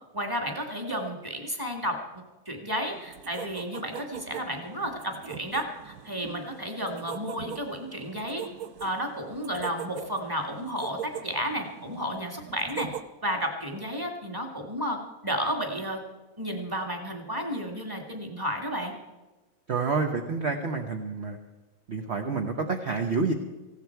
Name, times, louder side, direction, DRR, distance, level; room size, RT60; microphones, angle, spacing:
voice 1, 0.1-2.0 2.5-8.4 8.8-12.9 13.2-16.0 16.4-18.9, equal, 15° right, 2 dB, 2.1 m, -32 dB
sound 1, 2.9-13.0, right 9 dB, 80° right, 1.3 m, -42 dB
voice 2, 19.7-21.4 21.9-23.3, right 4 dB, 50° right, 3 dB, 1.2 m, -28 dB
19.0 x 16.0 x 4.6 m, 1.1 s
omnidirectional pair, 1.6 m